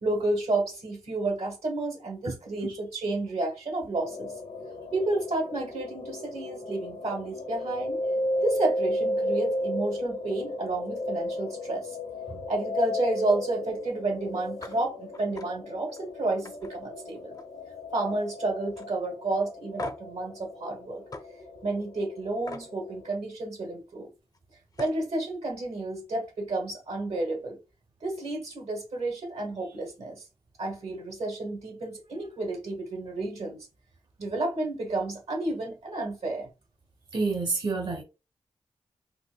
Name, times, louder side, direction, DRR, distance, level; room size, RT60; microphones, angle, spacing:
voice 1, 0.0-4.3 4.9-8.0 8.4-12.0 12.5-17.4 17.9-21.0 21.6-24.1 24.8-27.6 28.0-30.2 30.6-33.7 34.2-36.5, right 2 dB, 80° right, 1.5 m, -31 dB
sound 1, 4.0-23.1, left 1 dB, 90° left, 1.0 m, -34 dB
sound 2, 14.6-14.8 15.1-15.5 15.9-16.0 16.5-17.6 17.9-18.3 18.8-18.9 19.8-20.2 21.1-21.3 22.5-22.7 24.3-24.4 24.7-25.0, left 2 dB, 35° left, 0.5 m, -41 dB
voice 2, 37.1-38.0, right 3 dB, 45° right, 0.7 m, -29 dB
4.2 x 2.6 x 2.2 m
cardioid pair, 55°, 11 cm